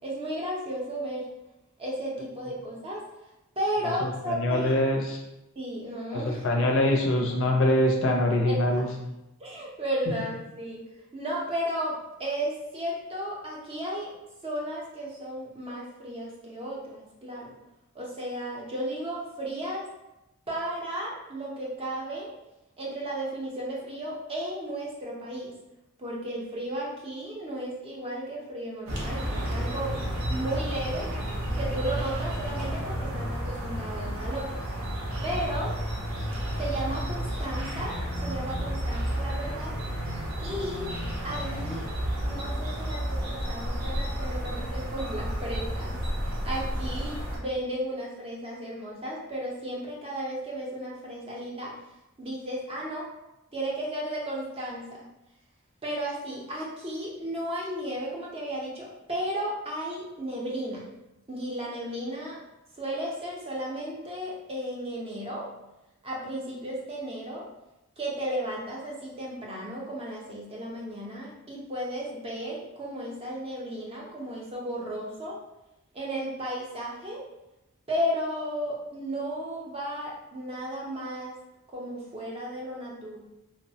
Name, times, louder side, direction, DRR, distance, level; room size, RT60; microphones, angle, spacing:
voice 1, 0.0-1.3 1.8-3.0 3.6-4.8 5.6-6.4 8.4-8.8 9.4-10.8 11.1-14.1 14.4-17.5 17.9-19.9 20.5-22.3 22.8-25.5 26.0-29.9 30.3-31.1 31.5-34.5 35.2-35.7 36.6-39.7 40.4-40.9 41.2-41.9 42.2-51.7 52.2-53.1 53.5-55.0 55.8-60.8 61.3-62.4 62.8-65.5 66.0-67.5 68.0-75.4 75.9-77.2 77.9-81.3 81.7-83.2, right 1 dB, 25° right, -4 dB, 0.5 m, -34 dB
voice 2, 4.0-5.2 6.1-8.9, left 1 dB, 60° left, 1 dB, 0.4 m, -24 dB
sound 1, 28.9-47.4, equal, 75° right, 0.7 m, -31 dB
3.0 x 2.0 x 2.7 m, 0.93 s
head